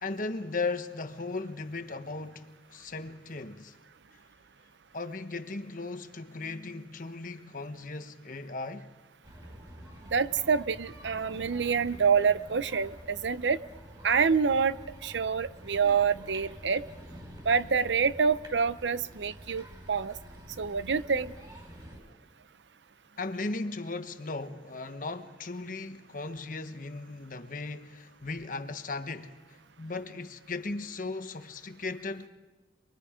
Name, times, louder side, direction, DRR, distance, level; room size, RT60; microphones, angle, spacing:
voice 1, 0.0-3.8 4.1-4.2 4.9-8.9 23.2-29.4 29.8-32.3, left 3 dB, 50° left, 1.2 m, -37 dB
sound 1, 9.2-22.0, equal, 25° right, 5.3 m, -48 dB
voice 2, 10.1-13.6 14.0-14.8 15.0-16.8 17.4-20.1 20.6-21.3, right 6 dB, 90° right, 0.7 m, -27 dB
27.0 x 22.5 x 5.1 m
head